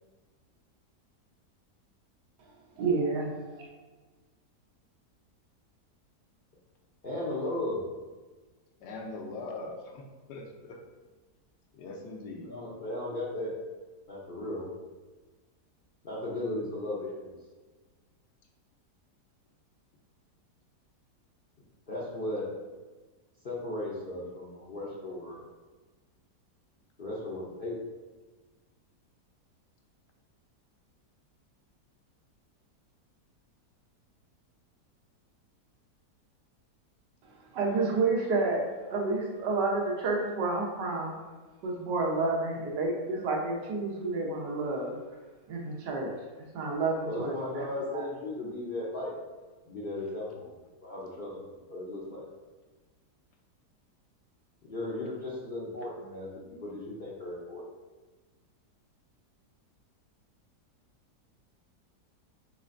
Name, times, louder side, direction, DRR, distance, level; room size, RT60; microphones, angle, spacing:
voice 1, 2.8-3.6 37.2-41.1 41.6-44.9 45.5-46.1 46.5-47.7 47.9-48.0, right 3 dB, 85° right, -1 dB, 1.5 m, -30 dB
voice 2, 7.0-7.8 12.5-13.5 14.1-14.7 16.0-17.3 21.9-22.5 23.4-25.4 27.0-27.8 47.0-49.1 49.7-50.5 50.8-52.2 54.6-56.3 56.6-57.6, left 1 dB, 55° left, -6 dB, 0.6 m, -36 dB
voice 3, 8.8-10.0 10.3-10.8 11.7-12.5, left 2 dB, 80° left, 1 dB, 1.3 m, -41 dB
5.8 x 3.2 x 2.5 m, 1.3 s
omnidirectional pair, 1.8 m